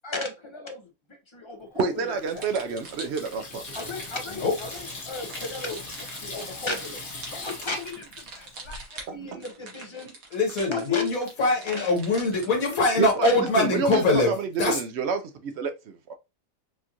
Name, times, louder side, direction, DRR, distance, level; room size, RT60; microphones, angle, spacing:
voice 1, 0.0-0.8 1.4-2.5 3.7-7.0 7.3-10.2 10.7-11.1 11.6-12.0 12.9-13.5 13.9-14.3, left 4 dB, 35° left, 0.4 m, -35 dB
voice 2, 1.7-3.6 9.1-9.4 13.0-16.1, right 5 dB, 65° right, 0.7 m, -29 dB
Water tap faucet / Sink (filling or washing), 2.1-8.8, left 3 dB, 55° left, 1.4 m, -40 dB
sound 1, 2.2-12.6, right 3 dB, 80° right, 1.5 m, -44 dB
voice 3, 10.3-14.3 14.6-14.8, left 2 dB, 80° left, 1.5 m, -23 dB
4.3 x 2.4 x 2.8 m
omnidirectional pair, 1.5 m